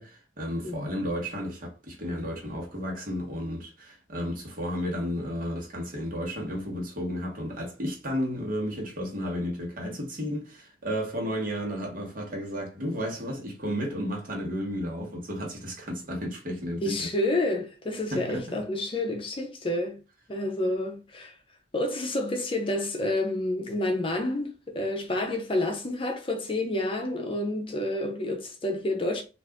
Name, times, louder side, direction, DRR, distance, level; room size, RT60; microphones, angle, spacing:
voice 1, 0.0-17.1 18.1-18.6, equal, 55° right, 1.2 m, -33 dB
voice 2, 16.8-20.0 20.3-21.4 21.7-29.2, left 1 dB, 30° left, 0.6 m, -29 dB
2.5 x 2.5 x 3.4 m
head